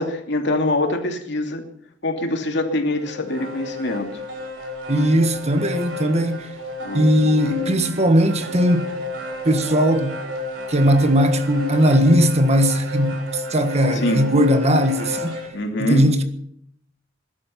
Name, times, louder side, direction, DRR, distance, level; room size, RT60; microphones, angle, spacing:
voice 1, 0.0-1.6 2.0-4.1 6.8-8.0 13.9-14.2 15.5-16.1, left 1 dB, 65° left, 2.7 m, -24 dB
sound 1, 2.9-15.5, left 2 dB, 80° right, 4.4 m, -32 dB
voice 2, 4.9-6.5 6.9-8.9 9.4-10.2 10.7-15.4 15.8-16.2, equal, 35° right, 1.5 m, -18 dB
20.5 x 12.0 x 5.7 m
head